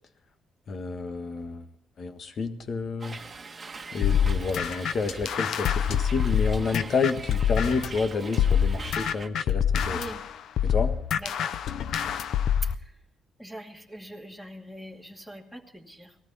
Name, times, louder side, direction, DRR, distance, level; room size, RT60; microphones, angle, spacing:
voice 1, 0.7-1.6 2.0-3.2 3.9-10.0 10.6-10.9, left 4 dB, 55° left, 8 dB, 1.5 m, -29 dB
Hiss, 3.0-9.3, right 4 dB, 30° right, 1.4 m, -42 dB
sound 1, 4.0-8.0 8.4-12.7, left 8 dB, 75° left, 0.6 m, -26 dB
voice 2, 9.9-10.2 11.1-11.6 12.6-13.0 13.4-16.2, right 1 dB, 5° left, 1 dB, 2.4 m, -42 dB
19.0 x 13.5 x 4.2 m, 0.74 s
cardioid pair, 90°, 0 cm